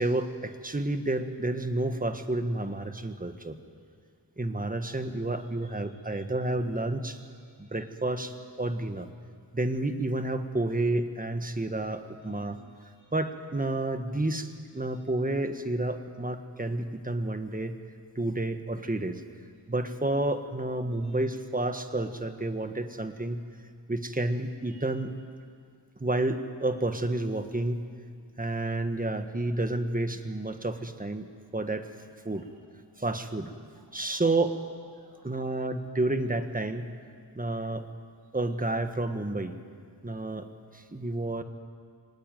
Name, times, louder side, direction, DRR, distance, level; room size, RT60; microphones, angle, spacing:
voice 1, 0.0-3.6 4.4-7.2 7.6-9.1 9.5-12.6 13.1-17.7 18.1-19.2 19.7-23.4 23.9-25.1 26.0-27.8 28.4-31.9 32.2-32.5 33.0-33.5 33.9-34.5 35.2-36.9 37.3-37.9 38.3-39.5 40.0-40.5 40.7-41.4, right 2 dB, 20° right, 7 dB, 1.6 m, -30 dB
voice 2, 5.4-6.2 7.3-7.9 12.2-12.5 12.7-13.2 14.9-15.0 19.6-19.7 20.9-21.2 24.6-24.9 31.2-31.4 31.8-31.9 32.3-33.1 33.6-34.3 34.9-35.6 37.3-37.5, right 2 dB, 65° right, 0 dB, 6.8 m, -63 dB
24.0 x 20.0 x 9.3 m, 2.2 s
wide cardioid pair, 95°, 41 cm